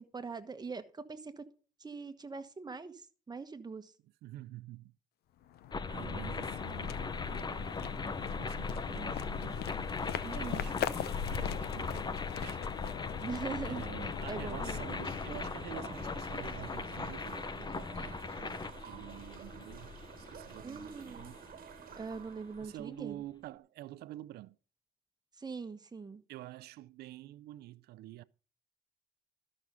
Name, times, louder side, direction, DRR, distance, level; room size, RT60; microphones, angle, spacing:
voice 1, 0.0-1.5 1.8-3.9 10.2-10.7 13.2-13.8 14.3-14.8 20.6-21.3 21.9-23.2 25.4-26.2, right 4 dB, 25° right, 1.3 m, -42 dB
voice 2, 4.0-4.9 5.9-9.7 10.3-11.0 11.3-12.7 13.7-19.9 20.3-21.4 22.6-24.6 26.3-28.2, right 15 dB, 90° right, 0.5 m, -48 dB
sound 1, 5.4-16.2, left 10 dB, 85° left, 0.7 m, -41 dB
sound 2, 5.7-22.6, left 4 dB, 25° left, 0.7 m, -39 dB
sound 3, 14.2-22.8, right 8 dB, 65° right, 1.4 m, -51 dB
13.0 x 6.3 x 5.4 m
cardioid pair, 85°, 16 cm